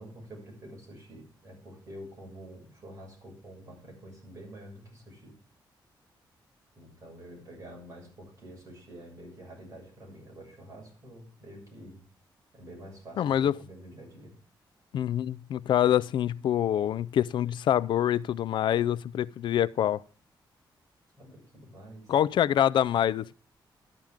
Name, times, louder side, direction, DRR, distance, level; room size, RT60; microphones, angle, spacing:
voice 1, 0.0-5.3 6.7-12.1 12.5-14.3 21.1-22.1, right 1 dB, 40° right, 6.8 m, -47 dB
voice 2, 13.2-13.6 14.9-20.0 22.1-23.3, left 10 dB, 70° left, 0.4 m, -25 dB
13.0 x 10.5 x 3.6 m
wide cardioid pair, 150°, 8 cm